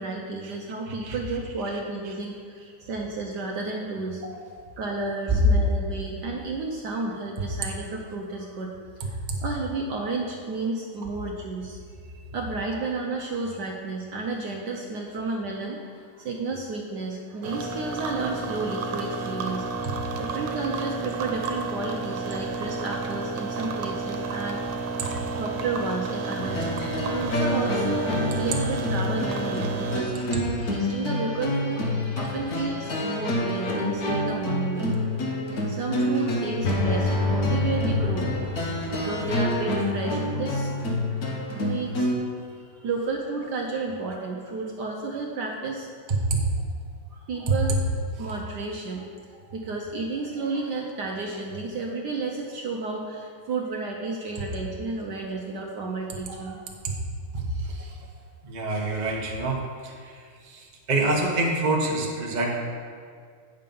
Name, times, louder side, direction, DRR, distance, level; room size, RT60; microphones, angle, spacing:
voice 1, 0.0-4.2 4.8-8.7 9.0-11.8 12.3-19.7 20.2-25.0 25.4-30.1 30.7-31.9 32.1-34.9 35.7-40.8 41.6-45.9 47.1-47.8 48.2-56.7, right 3 dB, 60° right, 0 dB, 1.2 m, -32 dB
voice 2, 0.9-1.2 25.0-25.4 46.3-46.4 57.3-58.0 58.4-62.6, right 2 dB, 30° right, -1 dB, 0.9 m, -27 dB
sound 1, 17.4-30.0, right 4 dB, 90° right, 1.7 m, -31 dB
sound 2, 26.4-42.1, left 1 dB, 50° left, 1.4 m, -27 dB
9.2 x 6.6 x 5.3 m, 2.1 s
omnidirectional pair, 2.3 m